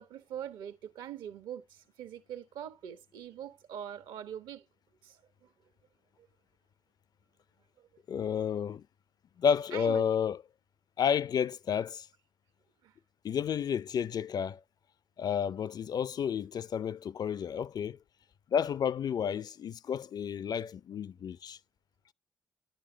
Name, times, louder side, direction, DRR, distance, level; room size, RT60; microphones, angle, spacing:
voice 1, 0.0-4.7 5.0-5.5 7.8-7.9 9.7-10.1 12.8-12.9, right 9 dB, 75° right, 1.3 m, -43 dB
voice 2, 8.1-8.9 9.4-10.4 11.0-12.1 13.2-14.6 15.2-18.0 18.5-21.6, left 7 dB, 55° left, 0.6 m, -31 dB
11.0 x 6.6 x 2.9 m
hypercardioid pair, 50°, 8 cm